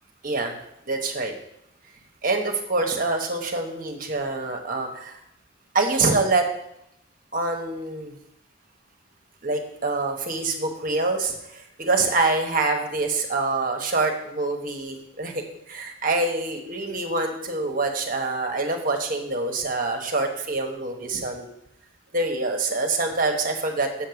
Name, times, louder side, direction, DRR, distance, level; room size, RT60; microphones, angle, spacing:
voice 1, 0.2-0.6 0.8-1.3 2.2-5.2 5.7-6.5 7.3-8.1 9.4-21.5 22.1-23.9, right 3 dB, 40° right, 3 dB, 1.2 m, -25 dB
7.3 x 6.7 x 5.8 m, 0.78 s
head